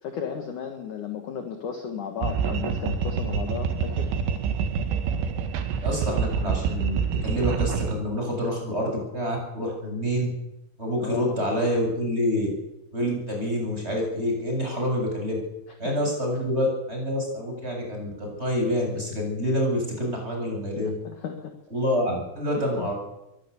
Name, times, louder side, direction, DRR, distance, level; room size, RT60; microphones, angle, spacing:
voice 1, 0.0-4.1 11.0-11.4 15.8-16.0 21.0-21.5 22.5-22.9, left 7 dB, 55° left, 5 dB, 2.3 m, -34 dB
sound 1, 2.2-7.9, right 6 dB, 70° right, 4.0 m, -27 dB
voice 2, 5.8-10.3 10.8-12.5 12.9-15.4 15.8-21.0 21.7-22.9, equal, 10° right, 1 dB, 7.4 m, -27 dB
23.0 x 16.5 x 8.4 m, 0.89 s
omnidirectional pair, 6.0 m